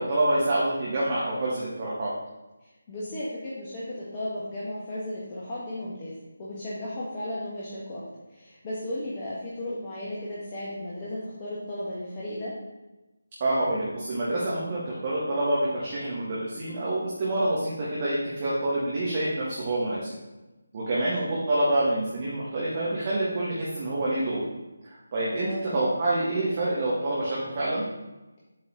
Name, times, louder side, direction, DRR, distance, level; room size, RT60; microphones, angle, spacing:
voice 1, 0.0-2.1 13.4-20.0 20.7-24.4 24.8-27.8, right 1 dB, 35° right, -6 dB, 1.5 m, -27 dB
voice 2, 2.6-6.1 6.4-8.0 8.3-12.5 20.9-21.1 25.3-25.7, left 1 dB, 25° left, -8 dB, 1.4 m, -35 dB
7.7 x 4.0 x 3.9 m, 1.1 s
figure-of-eight pair, 155°, 0 cm